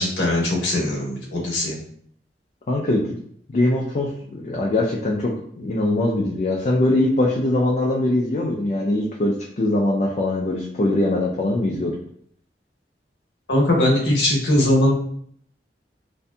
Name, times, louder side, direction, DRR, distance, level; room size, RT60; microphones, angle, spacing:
voice 1, 0.0-1.8 13.5-14.9, left 1 dB, 85° left, -2 dB, 0.8 m, -20 dB
voice 2, 2.7-3.1 3.5-12.0, left 1 dB, 40° left, -3 dB, 0.3 m, -22 dB
2.6 x 2.5 x 2.2 m, 0.64 s
head